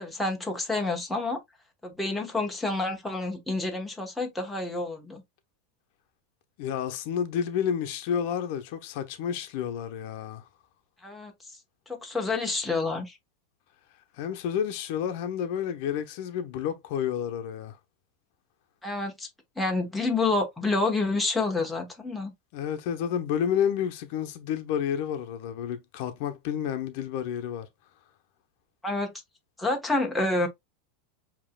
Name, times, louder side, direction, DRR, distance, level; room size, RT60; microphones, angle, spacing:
voice 1, 0.0-1.4 1.8-5.2 11.0-11.3 11.9-13.2 18.8-19.3 19.6-22.3 28.8-29.1 29.6-30.5, left 3 dB, 5° left, 1.0 m, -28 dB
voice 2, 6.6-10.4 14.2-17.8 22.5-27.7, left 8 dB, 60° left, 0.8 m, -30 dB
7.3 x 2.9 x 2.2 m
supercardioid pair, 150°, 0 cm